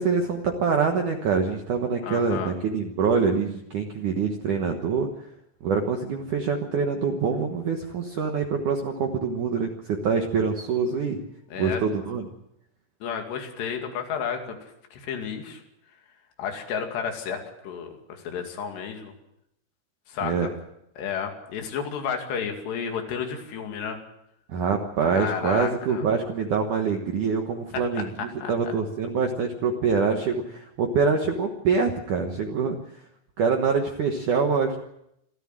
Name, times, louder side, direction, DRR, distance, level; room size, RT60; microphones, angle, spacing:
voice 1, 0.0-5.1 5.6-11.2 11.6-12.3 20.2-20.5 24.5-33.0 33.4-34.8, right 5 dB, 90° right, 3 dB, 1.7 m, -25 dB
voice 2, 2.0-2.5 11.5-11.8 13.0-15.6 16.4-19.1 20.1-20.5 21.0-24.0 25.0-26.0 28.4-28.7, left 7 dB, 60° left, 4 dB, 4.3 m, -32 dB
27.0 x 13.5 x 7.6 m, 0.80 s
omnidirectional pair, 5.9 m